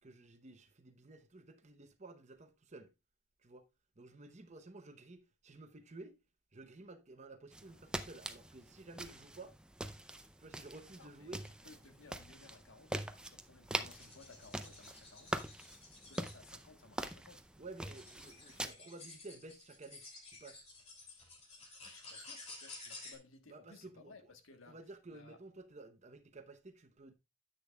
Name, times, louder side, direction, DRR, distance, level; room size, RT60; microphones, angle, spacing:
voice 1, 0.0-2.9 3.4-3.7 4.0-6.2 6.5-9.5 10.4-11.4 17.6-20.0 20.3-20.6 23.5-24.2 24.7-27.1, right 2 dB, 35° right, 0.9 m, -53 dB
sound 1, 7.5-18.7, right 1 dB, 5° right, 0.5 m, -44 dB
voice 2, 11.0-11.4 11.6-15.5 15.9-17.4 21.8-24.8 25.1-25.4, left 3 dB, 85° left, 1.3 m, -59 dB
sound 2, 13.9-16.4 17.2-17.3 17.9-23.2, left 3 dB, 35° left, 2.8 m, -53 dB
10.0 x 8.2 x 2.3 m
head